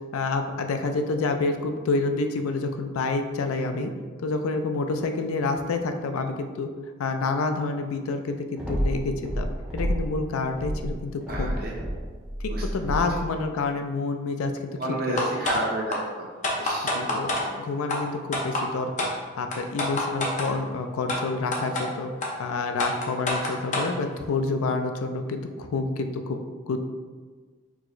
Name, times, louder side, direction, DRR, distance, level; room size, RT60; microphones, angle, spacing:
voice 1, 0.1-3.9 4.2-6.7 7.0-11.5 12.7-14.7 15.2-15.3 16.8-17.3 17.6-19.1 19.4-22.1 22.4-26.4 26.7-26.8, left 3 dB, 85° left, 6 dB, 0.4 m, -28 dB
sound 1, 8.6-10.2 10.5-13.3, equal, 5° right, 0.7 m, -30 dB
voice 2, 11.3-11.7 12.5-12.9 14.8-16.3 16.6-17.6, right 1 dB, 45° right, -2 dB, 0.7 m, -31 dB
sound 2, 15.2-15.6 15.9-16.0 16.4-17.4 17.9-18.0 18.3-18.6 19.0-19.1 19.5-20.5 21.1-21.2 21.5-21.8 22.2-22.3 22.8-23.9, left 2 dB, 35° left, 0.6 m, -26 dB
4.8 x 2.0 x 3.8 m, 1.4 s
head